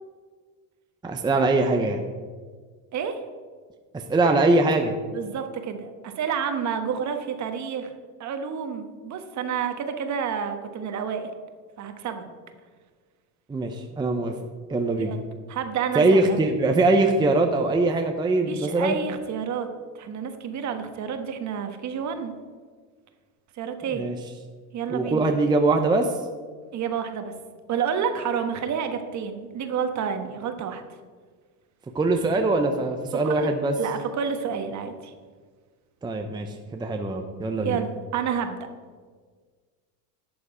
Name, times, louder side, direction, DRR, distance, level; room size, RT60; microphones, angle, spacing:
voice 1, 1.0-2.0 3.9-4.9 13.5-14.3 14.7-15.1 15.9-19.0 23.9-24.2 24.9-26.1 31.9-33.7 36.0-37.8, right 2 dB, 10° right, 4 dB, 0.6 m, -22 dB
voice 2, 2.9-3.2 5.1-7.9 8.2-11.3 11.8-12.2 15.0-15.2 15.5-16.4 18.5-19.7 19.9-22.3 23.5-24.0 24.7-25.2 26.7-27.3 27.7-30.8 33.2-35.1 37.6-38.6, right 7 dB, 45° right, 7 dB, 1.3 m, -29 dB
11.5 x 7.0 x 4.9 m, 1.5 s
supercardioid pair, 120°, 40 cm